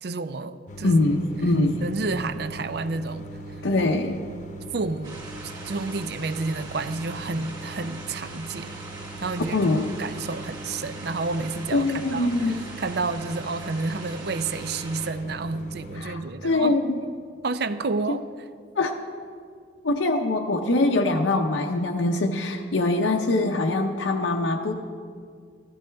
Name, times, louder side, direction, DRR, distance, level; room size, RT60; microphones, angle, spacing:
voice 1, 0.0-1.0 1.8-3.3 4.2-4.3 4.7-5.3 5.6-8.8 9.2-9.7 10.0-16.8 17.4-18.2, right 3 dB, 55° right, 13 dB, 0.5 m, -30 dB
sound 1, 0.7-16.0, right 2 dB, 40° left, 0.8 m, -41 dB
voice 2, 0.8-1.9 3.6-4.2 9.5-9.9 11.7-12.6 16.0-17.0 18.1-18.2 18.8-18.9 19.8-24.8, left 2 dB, 85° left, 2 dB, 0.7 m, -23 dB
sound 2, 5.0-15.1, right 3 dB, 25° right, 2.5 m, -42 dB
15.0 x 13.0 x 3.4 m, 2.1 s
head